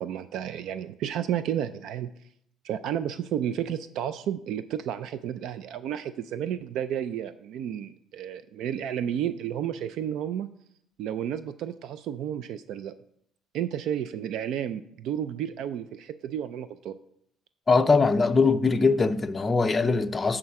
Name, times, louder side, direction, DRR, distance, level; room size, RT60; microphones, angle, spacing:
voice 1, 0.0-2.1 2.6-10.5 11.0-12.9 13.5-17.0, right 10 dB, 65° right, 0.4 m, -32 dB
voice 2, 17.7-20.4, left 4 dB, 20° left, 0.5 m, -22 dB
10.5 x 3.8 x 5.8 m
cardioid pair, 145°, 0 cm